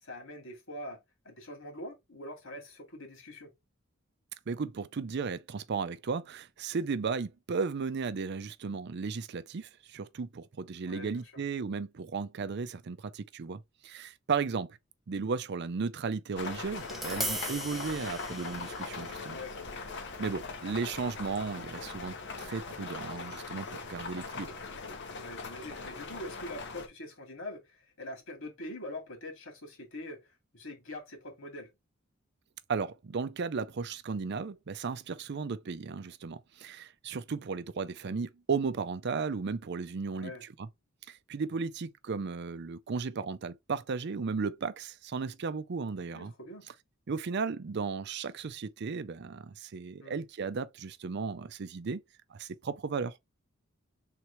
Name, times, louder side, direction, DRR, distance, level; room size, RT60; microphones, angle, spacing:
voice 1, 0.0-1.0 1.2-3.5 10.9-11.4 19.3-19.8 25.2-31.7 40.1-40.4 46.0-46.7 50.0-50.2, left 1 dB, 75° left, 2.2 m, -44 dB
voice 2, 4.5-14.7 15.1-19.4 20.2-24.6 32.7-40.7 41.1-46.3 47.1-52.0 52.3-53.2, right 5 dB, 55° right, 0.5 m, -35 dB
sound 1, 16.4-26.9, left 4 dB, 55° left, 0.9 m, -41 dB
Tap, 16.7-22.9, right 1 dB, ahead, 0.5 m, -42 dB
3.6 x 3.1 x 4.4 m
head